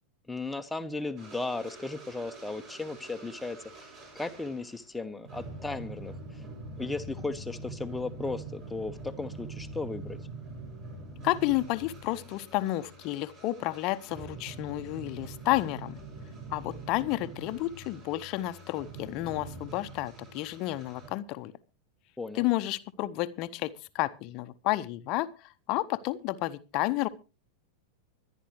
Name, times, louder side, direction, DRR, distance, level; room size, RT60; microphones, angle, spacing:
voice 1, 0.3-6.2 6.8-10.2 22.2-22.4, left 3 dB, 5° left, 8 dB, 1.1 m, -36 dB
sound 1, 1.2-4.9 5.2-21.1, right 3 dB, 35° right, 7.8 m, -44 dB
voice 2, 11.2-16.0 16.5-21.5 22.3-27.1, left 17 dB, 40° left, 13 dB, 0.8 m, -31 dB
24.5 x 10.0 x 3.1 m, 0.32 s
figure-of-eight pair, 90°, 0 cm